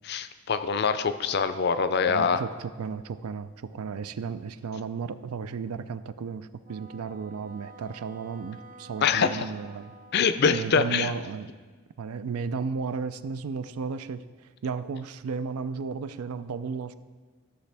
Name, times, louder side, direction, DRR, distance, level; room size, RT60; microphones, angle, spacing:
voice 1, 0.0-2.4 9.0-9.4 10.1-11.1, left 6 dB, 50° left, 11 dB, 0.4 m, -24 dB
voice 2, 2.1-9.9 10.5-11.5 12.0-16.9, right 5 dB, 85° right, 13 dB, 0.4 m, -34 dB
Wind instrument woodwind instrument, 6.6-11.1, right 2 dB, 40° right, 0.7 m, -50 dB
13.0 x 6.7 x 3.4 m, 1.4 s
head